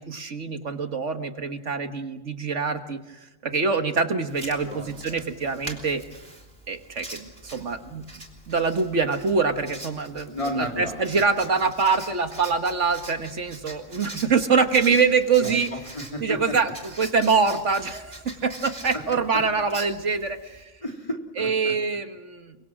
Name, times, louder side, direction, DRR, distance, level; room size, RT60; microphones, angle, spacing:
voice 1, 0.0-6.0 6.7-8.0 8.5-15.7 16.2-16.7 17.0-20.7 21.4-22.6, right 5 dB, 65° right, 7 dB, 1.8 m, -24 dB
Writing, 4.3-20.6, right 2 dB, 40° right, 3.7 m, -43 dB
voice 2, 4.6-5.2 10.3-11.2 15.4-16.5 18.3-18.4 20.8-21.7, left 1 dB, 25° left, 2 dB, 3.8 m, -33 dB
30.0 x 24.0 x 6.2 m, 1.0 s
omnidirectional pair, 1.3 m